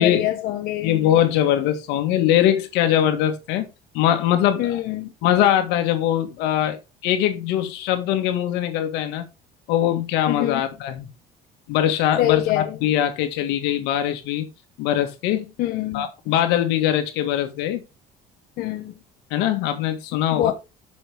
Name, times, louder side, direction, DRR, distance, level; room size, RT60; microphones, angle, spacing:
voice 1, 0.0-0.9 4.6-5.1 10.3-10.6 12.2-12.8 15.6-16.1 18.6-19.0 20.3-20.5, left 13 dB, 60° left, 1.2 m, -24 dB
voice 2, 0.8-3.7 3.9-4.8 5.2-9.2 9.7-11.1 11.7-14.5 14.8-15.5 15.9-17.8 19.3-20.5, left 11 dB, 85° left, 1.8 m, -22 dB
8.9 x 6.2 x 3.5 m
cardioid pair, 145°, 17 cm